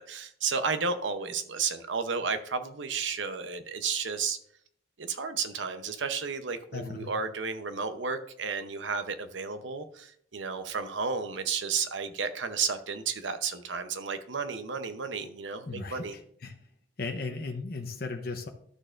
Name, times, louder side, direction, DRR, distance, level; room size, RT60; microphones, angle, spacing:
voice 1, 0.0-4.4 5.0-16.2, right 5 dB, 80° right, 9 dB, 0.8 m, -32 dB
voice 2, 6.7-7.1 15.7-16.5 17.0-18.5, left 3 dB, 50° left, 4 dB, 0.8 m, -36 dB
12.5 x 6.4 x 2.5 m, 0.65 s
head